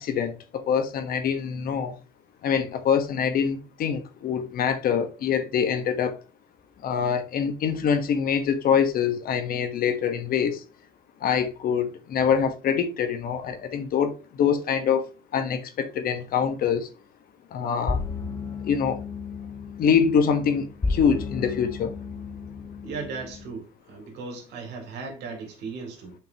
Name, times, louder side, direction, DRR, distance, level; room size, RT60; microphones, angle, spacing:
voice 1, 0.0-1.9 2.4-6.2 6.8-10.6 11.2-15.0 15.3-16.9 17.5-18.0 18.6-19.0 19.8-21.9, left 7 dB, 60° left, 1.2 m, -24 dB
sound 1, 17.9-23.5, left 4 dB, 20° left, 0.6 m, -33 dB
voice 2, 22.8-26.2, right 4 dB, 85° right, 2.7 m, -37 dB
7.6 x 5.3 x 2.9 m
cardioid pair, 110°, 17 cm